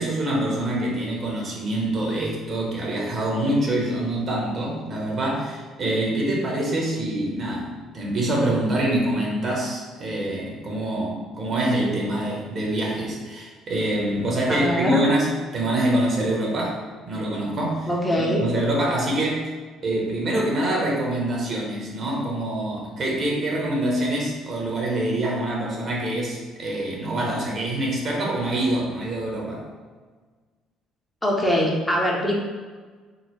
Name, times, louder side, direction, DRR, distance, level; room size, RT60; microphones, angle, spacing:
voice 1, 0.0-16.8 17.1-17.9 18.1-19.5 19.8-29.6, right 1 dB, 45° right, -2 dB, 0.9 m, -25 dB
voice 2, 14.5-15.0 17.9-18.5 31.2-32.4, equal, 15° left, -2 dB, 0.7 m, -22 dB
3.8 x 2.0 x 3.0 m, 1.4 s
figure-of-eight pair, 50°, 0 cm